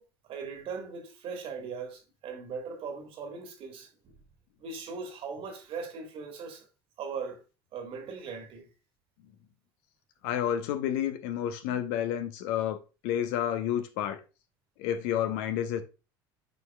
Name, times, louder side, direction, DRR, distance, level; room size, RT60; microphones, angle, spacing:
voice 1, 0.2-4.2 4.6-6.7 7.0-7.4 7.7-8.7, right 5 dB, 50° right, 1.9 m, -39 dB
voice 2, 10.2-12.8 13.0-14.2 14.8-15.8, left 10 dB, 65° left, 1.0 m, -30 dB
11.0 x 4.7 x 2.3 m
figure-of-eight pair, 70°, 12 cm